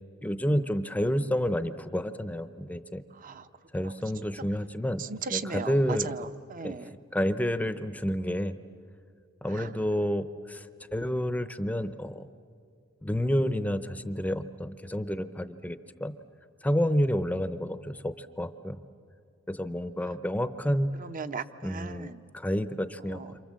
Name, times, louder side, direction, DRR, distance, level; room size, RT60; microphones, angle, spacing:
voice 1, 0.2-3.0 3.7-5.0 5.3-6.1 6.6-6.8 7.1-8.6 9.4-10.7 10.9-12.3 13.0-16.1 16.6-18.8 19.5-20.9 21.6-23.4, equal, 5° left, 11 dB, 0.7 m, -29 dB
voice 2, 3.1-3.5 5.0-6.9 9.5-9.7 21.0-22.2 23.1-23.3, right 5 dB, 40° right, 11 dB, 0.8 m, -37 dB
28.5 x 27.5 x 7.5 m, 2.3 s
head